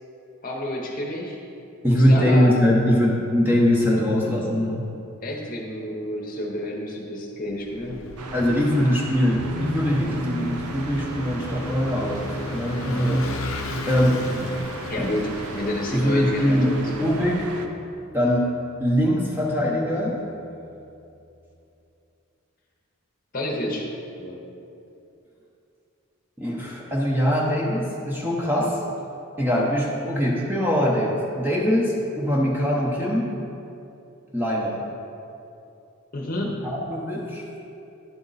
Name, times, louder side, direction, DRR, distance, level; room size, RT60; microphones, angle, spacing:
voice 1, 0.4-1.4 1.8-2.5 5.2-8.1 14.9-17.1 23.3-23.9 24.2-24.4 36.1-36.6, left 1 dB, 40° left, -1 dB, 0.8 m, -29 dB
voice 2, 1.8-4.8 8.3-13.3 13.8-14.8 15.9-16.7 17.0-17.5 18.1-18.5 18.8-20.2 26.4-28.8 29.4-33.3 34.3-34.8 36.6-37.4, equal, 10° right, -4 dB, 0.8 m, -22 dB
Vehicle / Engine, 7.6-17.4, left 2 dB, 70° left, 0.6 m, -37 dB
sound 1, 8.2-17.7, right 3 dB, 85° right, 0.6 m, -37 dB
sound 2, 9.3-18.3, equal, 40° right, 1.1 m, -39 dB
11.0 x 4.3 x 4.0 m, 2.8 s
head